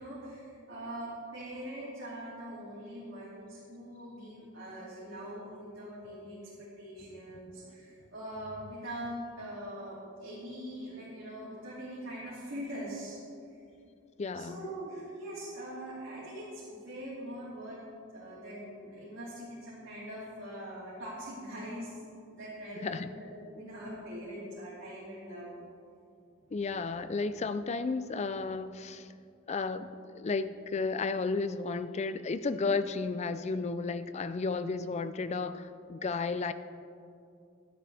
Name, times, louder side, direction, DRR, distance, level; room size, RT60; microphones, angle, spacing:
voice 1, 0.0-13.2 14.3-17.8 18.1-22.0 22.3-25.5, right 1 dB, 60° right, -10 dB, 2.7 m, -42 dB
voice 2, 14.2-14.6 22.8-23.1 26.5-29.1 29.5-36.5, left 4 dB, 30° left, 12 dB, 0.4 m, -33 dB
12.0 x 10.5 x 3.4 m, 2.5 s
head